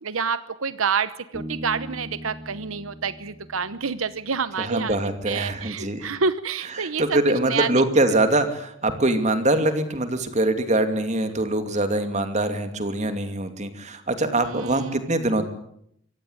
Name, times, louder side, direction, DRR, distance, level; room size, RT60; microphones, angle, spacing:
voice 1, 0.0-5.0 5.3-7.2 7.4-7.7 14.3-15.0, right 5 dB, 85° right, 14 dB, 1.0 m, -28 dB
Bass guitar, 1.3-4.8, equal, 15° right, 2.5 m, -40 dB
voice 2, 4.6-6.1 6.8-15.5, right 2 dB, 35° right, 8 dB, 2.7 m, -23 dB
24.5 x 17.0 x 9.8 m, 0.73 s
head